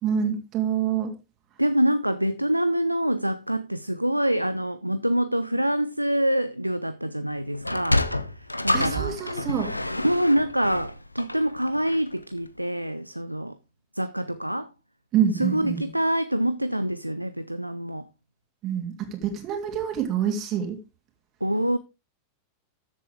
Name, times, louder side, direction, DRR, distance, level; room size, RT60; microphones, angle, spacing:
voice 1, 0.0-1.1 8.7-9.7 15.1-15.9 18.6-20.8, right 8 dB, 35° right, 2.7 m, -26 dB
voice 2, 1.6-8.0 8.6-9.2 10.0-13.6 14.0-14.7 15.3-18.1 21.4-21.8, equal, 90° right, 0.5 m, -25 dB
Sliding door, 7.5-12.2, left 1 dB, 85° left, 0.7 m, -28 dB
13.5 x 7.6 x 3.5 m
figure-of-eight pair, 90°, 0 cm